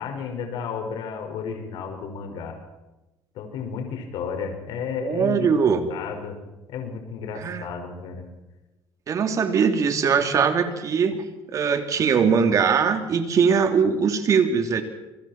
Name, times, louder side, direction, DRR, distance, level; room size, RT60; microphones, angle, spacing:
voice 1, 0.0-2.6 3.3-5.6 5.9-6.4 6.7-8.3, left 6 dB, 70° left, 4 dB, 5.3 m, -32 dB
voice 2, 5.0-5.9 7.3-7.7 9.1-11.2 11.5-14.8, right 6 dB, 45° right, 6 dB, 3.2 m, -21 dB
28.0 x 23.0 x 4.5 m, 1.0 s
cardioid pair, 130°, 8 cm